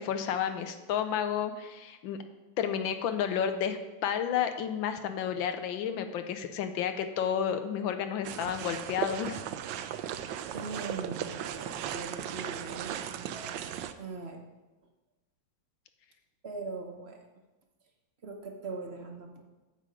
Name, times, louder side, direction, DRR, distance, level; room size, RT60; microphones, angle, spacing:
voice 1, 0.0-2.2 2.6-9.4, left 8 dB, 85° left, 8 dB, 1.5 m, -31 dB
sound 1, 8.2-13.9, right 10 dB, 75° right, 1.2 m, -37 dB
voice 2, 10.5-13.0 13.3-13.7 14.0-14.4 16.4-17.2 18.2-19.4, right 3 dB, 40° right, 3 dB, 1.0 m, -41 dB
8.7 x 7.6 x 5.0 m, 1.1 s
omnidirectional pair, 2.1 m